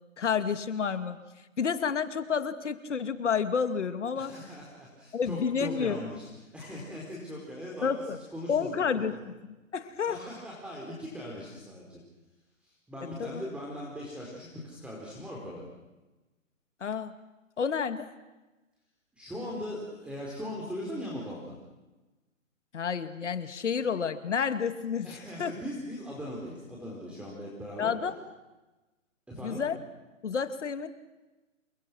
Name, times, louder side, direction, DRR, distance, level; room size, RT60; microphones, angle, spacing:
voice 1, 0.2-1.2 1.6-4.3 5.1-6.0 7.8-8.2 8.5-9.2 9.4-10.2 13.2-13.4 16.8-17.1 17.6-18.1 22.7-25.5 27.8-28.2 29.4-29.8 30.2-30.9, left 6 dB, 60° left, 10 dB, 2.5 m, -30 dB
voice 2, 4.2-6.3 6.5-7.9 8.3-9.1 10.1-12.0 12.6-15.6 19.1-21.6 25.0-27.9 29.3-29.6, equal, 5° right, -3 dB, 4.5 m, -39 dB
28.0 x 27.0 x 6.2 m, 1.1 s
hypercardioid pair, 145°, 40 cm